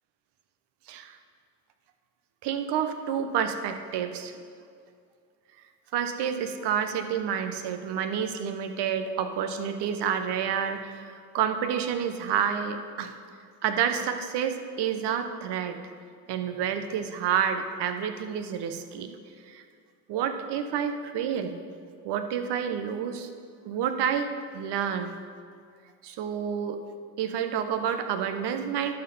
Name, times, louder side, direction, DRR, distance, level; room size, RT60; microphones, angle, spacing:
voice 1, 2.4-4.4 5.9-13.1 13.6-15.8 16.3-19.2 19.5-19.6 20.1-21.6 22.0-23.3 23.6-25.2 26.0-26.8 27.2-29.0, right 8 dB, 60° right, 8 dB, 0.9 m, -29 dB
12.0 x 4.4 x 5.6 m, 2.2 s
hypercardioid pair, 70°, 46 cm